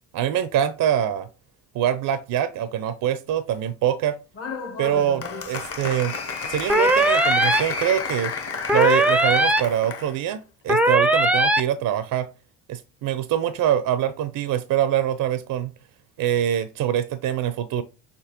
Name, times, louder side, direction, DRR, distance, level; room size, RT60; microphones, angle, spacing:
voice 1, 0.1-1.3 1.7-4.2 4.8-6.1 6.4-8.3 8.7-12.3 12.7-15.7 16.2-17.8, right 10 dB, 50° right, 0.6 m, -24 dB
Applause, 4.3-10.1, left 5 dB, 35° left, 1.0 m, -31 dB
sound 1, 6.7-7.6 8.7-9.6 10.7-11.6, right 1 dB, 5° right, 0.5 m, -18 dB
5.9 x 2.8 x 2.9 m
hypercardioid pair, 65°, 43 cm